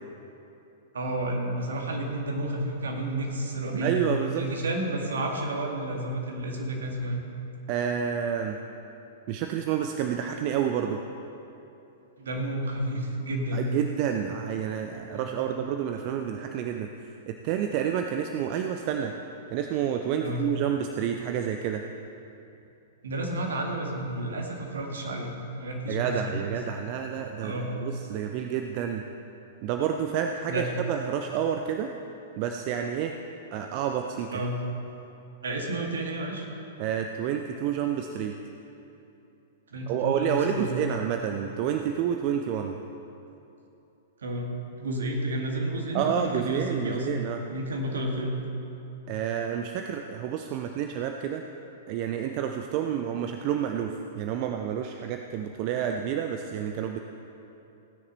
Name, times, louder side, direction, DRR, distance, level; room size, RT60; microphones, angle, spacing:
voice 1, 0.9-4.0 4.3-7.2 12.2-13.7 15.1-15.5 20.2-20.5 23.0-26.6 27.4-27.8 30.5-30.7 34.3-34.6 35.4-36.5 39.7-40.7 44.2-44.5 44.8-47.2 47.5-48.4, right 1 dB, 65° right, 1 dB, 2.0 m, -31 dB
voice 2, 3.8-4.4 7.7-8.6 9.3-11.0 13.5-16.9 17.3-19.1 19.5-21.8 25.9-29.0 29.6-31.9 32.4-33.2 33.5-34.3 36.8-38.3 39.9-42.8 45.9-47.4 49.1-51.4 51.9-57.0, right 8 dB, 40° right, 5 dB, 0.6 m, -29 dB
16.5 x 9.8 x 4.1 m, 2.9 s
figure-of-eight pair, 105°, 0 cm